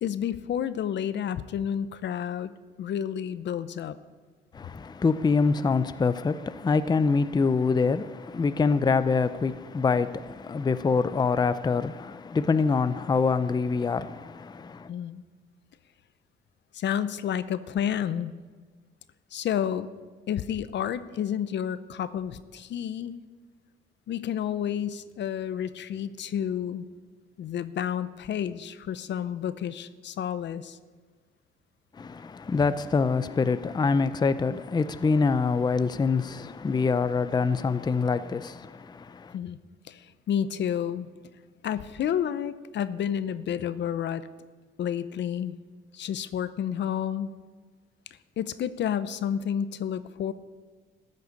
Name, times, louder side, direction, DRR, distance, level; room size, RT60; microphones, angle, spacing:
voice 1, 0.0-2.5 2.8-4.0 14.9-15.2 16.7-18.3 19.3-19.9 20.3-23.1 24.1-26.9 27.4-30.8 39.3-39.6 39.9-41.1 41.6-44.3 44.8-45.5 45.9-47.3 48.4-50.3, left 9 dB, 65° left, 0.7 m, -30 dB
voice 2, 4.5-14.9 31.9-39.4, left 4 dB, 20° left, 0.5 m, -25 dB
13.5 x 6.6 x 9.6 m
cardioid pair, 90°, 20 cm